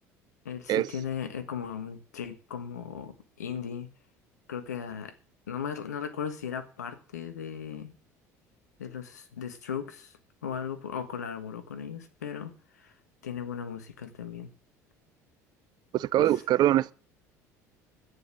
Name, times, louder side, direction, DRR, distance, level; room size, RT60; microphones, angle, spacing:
voice 1, 0.4-3.9 4.5-5.1 5.5-8.0 8.8-12.9 13.2-14.5 16.2-16.3, left 7 dB, 90° left, 1.5 m, -37 dB
voice 2, 15.9-16.9, right 13 dB, 50° right, 0.6 m, -23 dB
11.0 x 9.7 x 6.0 m
hypercardioid pair, 70°, 9 cm